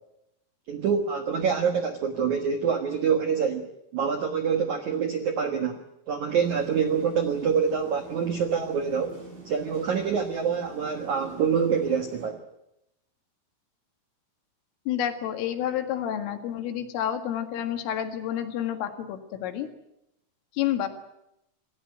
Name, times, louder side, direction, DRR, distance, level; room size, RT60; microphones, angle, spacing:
voice 1, 0.7-9.2 9.4-12.4, right 6 dB, 90° right, 6 dB, 1.6 m, -26 dB
sound 1, 6.4-12.3, right 2 dB, 60° right, 10.5 m, -45 dB
voice 2, 14.9-19.7 20.5-20.9, left 10 dB, 75° left, 7 dB, 4.4 m, -29 dB
28.0 x 16.0 x 9.4 m, 0.85 s
omnidirectional pair, 6.0 m